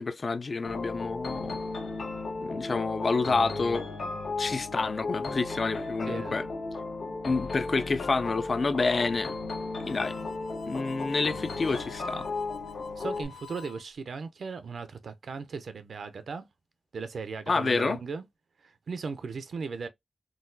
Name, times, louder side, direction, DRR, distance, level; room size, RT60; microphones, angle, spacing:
voice 1, 0.0-1.6 2.4-3.8 4.4-6.4 7.2-9.3 9.9-10.3 10.7-12.3 17.5-18.0, left 4 dB, 50° left, 0.3 m, -28 dB
sound 1, 0.6-13.2, left 3 dB, 70° left, 1.2 m, -35 dB
voice 2, 6.1-6.4 13.0-16.4 16.9-18.2 18.6-19.9, right 5 dB, 75° right, 0.5 m, -37 dB
Harmonica, 9.8-13.8, left 6 dB, 90° left, 0.7 m, -49 dB
3.8 x 2.3 x 2.6 m
wide cardioid pair, 105°, 0 cm